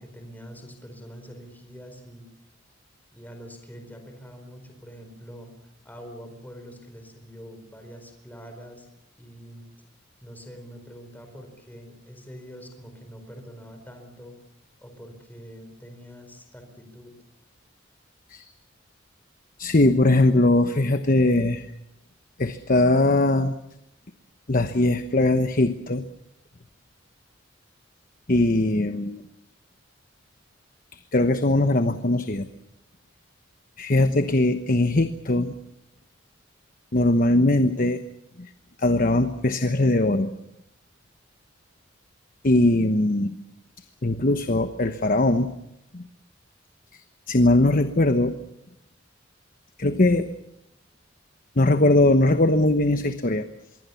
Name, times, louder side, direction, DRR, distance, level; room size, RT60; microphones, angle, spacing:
voice 1, 0.0-2.3 3.1-8.9 9.2-9.7 10.2-14.4 14.8-17.1, equal, 10° left, 5 dB, 4.5 m, -44 dB
voice 2, 19.6-21.7 22.4-23.5 24.5-26.0 28.3-29.2 30.9-32.5 33.8-35.5 36.9-38.0 38.4-38.5 38.8-40.3 42.4-43.3 44.0-45.5 45.9-46.0 47.3-48.4 49.8-50.3 51.6-53.4, left 2 dB, 45° left, 9 dB, 1.1 m, -20 dB
25.5 x 23.0 x 7.1 m, 0.82 s
head